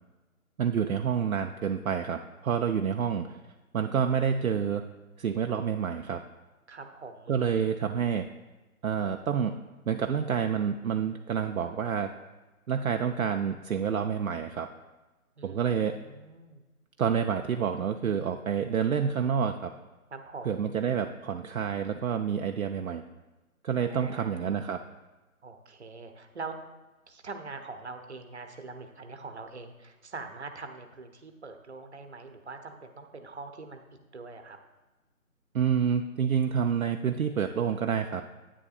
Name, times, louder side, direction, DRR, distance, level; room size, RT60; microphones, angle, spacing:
voice 1, 0.6-3.4 3.7-4.8 5.2-6.2 7.3-8.3 8.8-9.5 9.9-12.1 12.7-14.7 15.4-16.0 17.0-19.7 20.4-23.0 23.6-24.8 35.5-38.2, right 7 dB, 70° right, 5 dB, 0.5 m, -28 dB
voice 2, 6.7-7.4 15.4-15.6 16.0-16.6 20.1-20.6 23.8-24.5 25.4-26.6 27.1-33.8 34.1-34.6, right 4 dB, 50° right, 6 dB, 0.9 m, -43 dB
9.9 x 8.6 x 2.4 m, 1.1 s
figure-of-eight pair, 165°, 43 cm